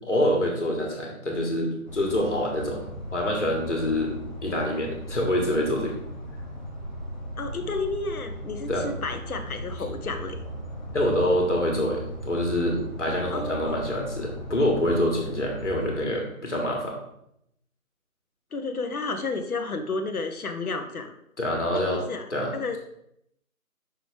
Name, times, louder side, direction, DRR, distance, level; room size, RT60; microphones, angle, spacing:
voice 1, 0.0-2.8 3.1-6.0 8.7-8.8 10.9-17.0 21.4-22.0 22.3-22.8, left 1 dB, 55° left, -1 dB, 1.7 m, -26 dB
sound 1, 1.9-16.0, equal, 30° left, 0.8 m, -37 dB
voice 2, 7.4-10.4 13.3-13.8 18.5-21.1 21.7-22.2 22.5-22.8, left 3 dB, 80° left, 7 dB, 0.9 m, -31 dB
6.0 x 3.3 x 5.0 m, 0.75 s
figure-of-eight pair, 175°, 43 cm